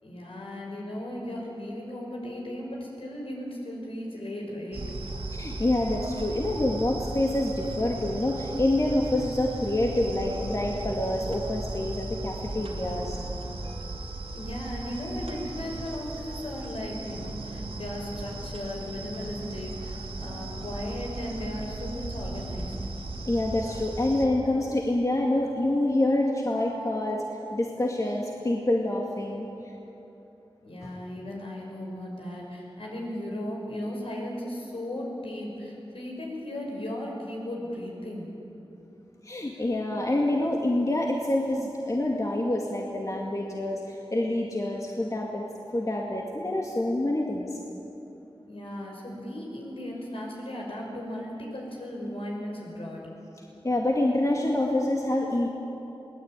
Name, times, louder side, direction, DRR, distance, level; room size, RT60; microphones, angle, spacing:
voice 1, 0.0-4.9 14.3-22.8 30.6-38.3 48.5-53.0, left 1 dB, 70° left, -1 dB, 6.2 m, -36 dB
sound 1, 4.7-24.3, right 2 dB, 80° right, 3.0 m, -36 dB
voice 2, 5.3-13.2 23.3-27.2 27.5-29.5 30.8-30.9 39.2-45.4 45.7-47.6 53.6-55.5, left 1 dB, 35° left, -1 dB, 2.2 m, -27 dB
23.0 x 19.0 x 9.1 m, 2.9 s
wide cardioid pair, 90°, 10 cm